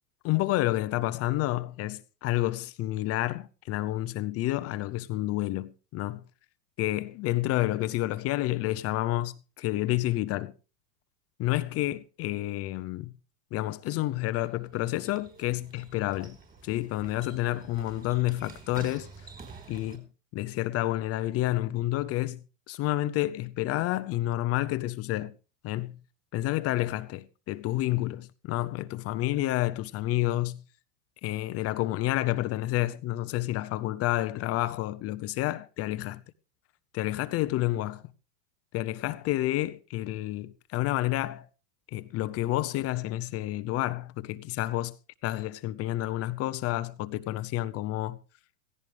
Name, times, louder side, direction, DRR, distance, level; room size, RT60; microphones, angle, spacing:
voice 1, 0.2-6.2 6.8-10.5 11.4-13.1 13.5-16.4 16.6-19.1 19.7-20.1 20.3-25.4 25.6-26.0 26.3-30.6 31.2-36.2 36.9-38.0 38.7-41.5 41.9-45.0 45.2-48.2, left 16 dB, 30° left, 0.7 m, -29 dB
sound 1, 14.3-20.0, right 4 dB, 20° right, 4.1 m, -49 dB
16.5 x 16.0 x 3.3 m
hypercardioid pair, 120°, 48 cm